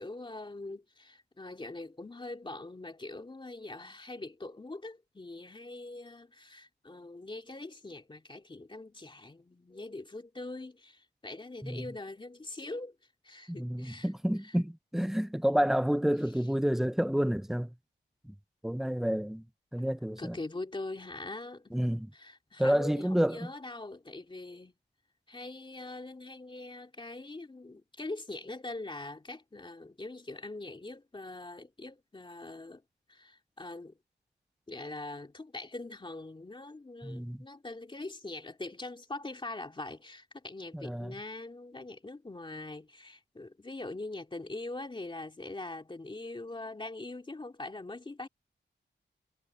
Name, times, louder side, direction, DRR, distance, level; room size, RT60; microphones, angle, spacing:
voice 1, 0.0-13.0 13.2-14.1 20.2-21.7 22.1-24.7 25.3-32.8 33.1-34.0 34.7-48.3, left 2 dB, 25° left, 2.6 m, -42 dB
voice 2, 13.6-17.7 18.2-18.3 18.6-19.4 19.7-20.4 21.7-22.1 22.6-23.5 37.0-37.5 40.7-41.2, equal, ahead, 0.4 m, -29 dB
wide cardioid pair, 115°, 20 cm